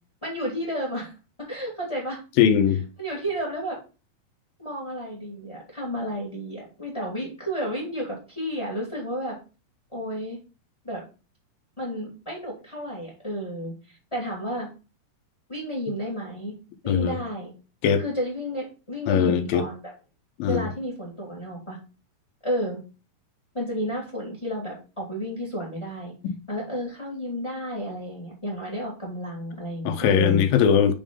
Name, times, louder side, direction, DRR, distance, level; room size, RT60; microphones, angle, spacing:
voice 1, 0.2-1.1 1.5-2.2 3.0-3.8 4.6-9.4 9.9-10.4 10.8-11.0 11.8-14.7 15.5-16.5 16.8-17.5 18.0-19.9 20.4-21.8 22.4-22.8 23.5-26.1 26.5-30.4, equal, 10° left, 1.6 m, -31 dB
voice 2, 2.4-2.8 16.9-17.2 17.8-18.0 19.1-19.7 20.4-20.7 26.2-26.3 29.9-30.9, left 8 dB, 80° left, 2.2 m, -20 dB
6.1 x 3.8 x 5.2 m
omnidirectional pair, 4.5 m